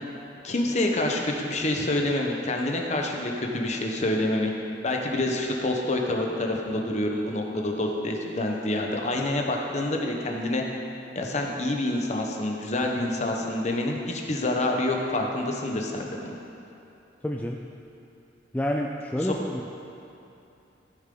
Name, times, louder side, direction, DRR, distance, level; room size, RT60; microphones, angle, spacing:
voice 1, 0.4-4.5 4.8-10.6 11.1-16.4 19.2-19.4, left 1 dB, 40° left, 1 dB, 1.0 m, -27 dB
voice 2, 17.2-17.6 18.5-19.7, equal, 10° left, 0 dB, 0.4 m, -29 dB
14.5 x 7.2 x 3.8 m, 2.8 s
head